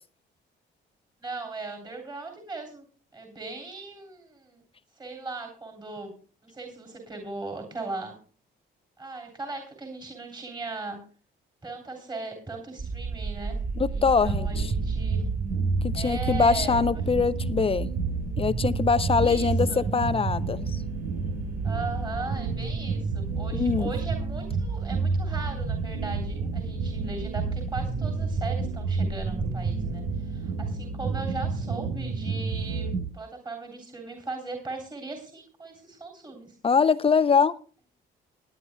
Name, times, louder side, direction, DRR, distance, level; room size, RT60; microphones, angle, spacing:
voice 1, 1.2-2.8 3.1-4.6 4.9-6.1 6.4-8.2 9.0-11.0 11.6-13.6 13.9-15.3 15.9-17.0 19.2-19.8 21.6-36.5, right 3 dB, 20° right, 2 dB, 3.1 m, -38 dB
sound 1, 12.8-30.1, right 4 dB, 50° right, 5.4 m, -35 dB
voice 2, 13.8-14.7 15.8-17.9 18.4-20.8 23.5-23.9 36.6-37.5, left 5 dB, 30° left, 15 dB, 0.5 m, -23 dB
sound 2, 14.3-33.0, right 4 dB, 75° right, 1.4 m, -30 dB
27.5 x 9.6 x 2.2 m, 0.39 s
cardioid pair, 90°, 20 cm